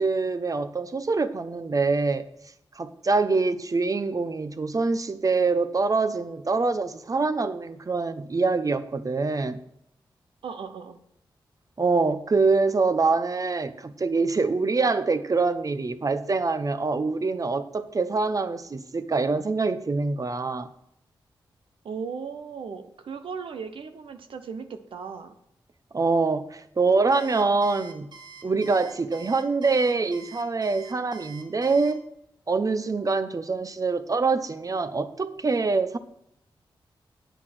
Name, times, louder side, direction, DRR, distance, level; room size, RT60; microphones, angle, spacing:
voice 1, 0.0-2.3 2.8-9.6 11.8-20.7 25.9-28.1 28.4-32.0 32.5-36.0, right 4 dB, 40° right, 12 dB, 0.8 m, -25 dB
voice 2, 10.4-11.0 21.8-25.3, right 6 dB, 85° right, 7 dB, 0.9 m, -37 dB
Alarm, 27.1-31.9, right 5 dB, 60° right, 2.1 m, -46 dB
8.2 x 8.1 x 6.1 m, 0.76 s
cardioid pair, 65°, 9 cm